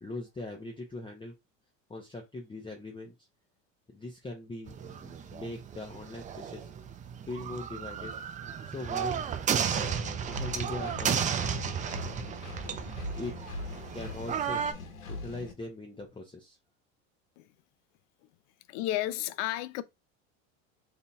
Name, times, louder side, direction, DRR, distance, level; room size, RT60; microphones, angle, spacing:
voice 1, 0.0-1.3 1.9-3.1 3.9-6.7 7.2-8.1 8.6-9.2 9.7-12.4 13.2-13.3 13.9-14.6 15.1-16.6, left 2 dB, 10° left, 0.8 m, -41 dB
sound 1, 4.7-14.7, right 7 dB, 20° right, 0.4 m, -34 dB
Engine, 10.3-15.5, left 2 dB, 90° left, 1.0 m, -41 dB
voice 2, 18.7-19.8, left 14 dB, 65° left, 0.5 m, -32 dB
3.8 x 2.7 x 2.3 m
hypercardioid pair, 90°, 40 cm